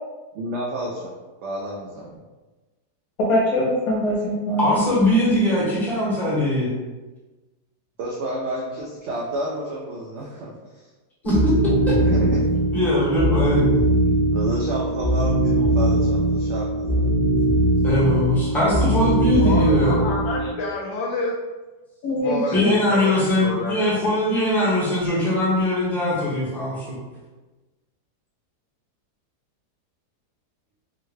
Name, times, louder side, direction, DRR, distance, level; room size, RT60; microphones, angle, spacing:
voice 1, 0.3-1.1 1.4-2.2 8.0-10.5 12.0-12.4 14.3-17.1, right 1 dB, 80° right, -3 dB, 0.6 m, -30 dB
voice 2, 3.3-4.7 22.0-22.7, left 1 dB, 70° left, -4 dB, 1.0 m, -22 dB
voice 3, 4.6-6.7 11.2-11.5 11.9-12.0 12.7-13.6 17.8-20.0 22.5-26.9, left 1 dB, ahead, -8 dB, 0.8 m, -21 dB
sound 1, 11.2-20.5, right 1 dB, 40° left, 0.7 m, -20 dB
voice 4, 19.4-21.3 22.2-23.9, left 2 dB, 90° left, -3 dB, 1.2 m, -28 dB
3.6 x 2.2 x 3.1 m, 1.2 s
omnidirectional pair, 1.8 m